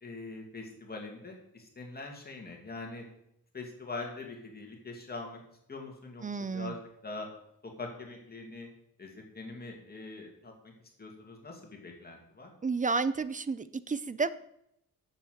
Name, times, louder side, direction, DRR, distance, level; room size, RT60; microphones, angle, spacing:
voice 1, 0.0-3.0 3.5-5.4 5.7-6.2 6.5-7.3 7.6-8.7 9.0-10.7 11.0-12.5, left 3 dB, 25° left, 1 dB, 2.4 m, -43 dB
voice 2, 6.2-6.7 12.6-14.3, right 4 dB, 25° right, 15 dB, 0.4 m, -31 dB
8.8 x 7.4 x 7.9 m, 0.76 s
wide cardioid pair, 165°, 35 cm